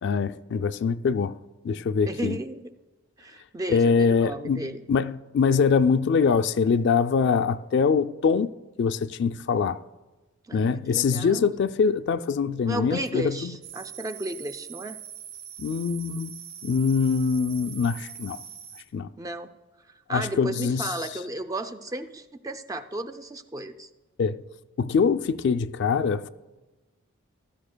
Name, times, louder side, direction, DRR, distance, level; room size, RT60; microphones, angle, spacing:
voice 1, 0.0-1.4 1.6-2.4 3.7-8.5 8.8-9.8 10.5-13.6 15.6-16.3 16.6-18.4 18.9-19.1 20.1-20.9 24.2-24.4 24.8-26.3, left 5 dB, 55° left, 0.3 m, -23 dB
voice 2, 2.1-2.7 3.2-4.8 10.5-11.6 12.6-15.0 19.2-19.5 19.9-23.9, right 1 dB, 15° right, 0.4 m, -34 dB
sound 1, 13.6-18.8, right 9 dB, 70° right, 1.9 m, -42 dB
15.0 x 12.5 x 2.2 m
head